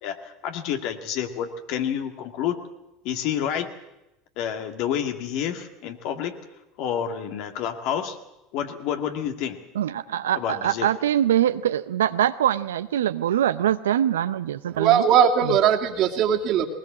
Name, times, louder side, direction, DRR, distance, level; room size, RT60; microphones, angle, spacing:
voice 1, 0.0-2.6 3.0-3.7 4.4-6.4 6.8-8.2 8.5-9.6 10.4-10.9, left 9 dB, 60° left, 6 dB, 2.1 m, -29 dB
voice 2, 9.8-15.1 15.4-15.6, right 11 dB, 80° right, 13 dB, 0.6 m, -23 dB
voice 3, 14.7-16.7, right 8 dB, 55° right, 4 dB, 2.3 m, -19 dB
20.5 x 19.5 x 7.5 m, 0.92 s
hypercardioid pair, 80°, 0 cm